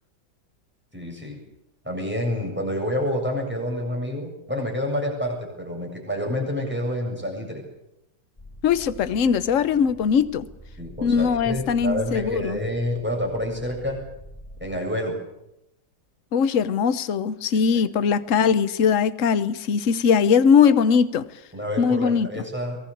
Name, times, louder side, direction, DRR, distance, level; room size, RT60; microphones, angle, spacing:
voice 1, 0.9-1.4 1.8-7.6 10.8-14.0 14.6-15.2 17.5-17.6 20.6-20.7 21.5-22.8, left 1 dB, 5° right, 0 dB, 7.6 m, -28 dB
sound 1, 8.4-14.8, equal, 15° left, 5.2 m, -45 dB
voice 2, 8.6-10.5 11.0-12.6 16.3-21.2 21.8-22.3, left 6 dB, 50° left, 14 dB, 1.2 m, -20 dB
23.0 x 19.5 x 8.6 m, 0.87 s
omnidirectional pair, 2.0 m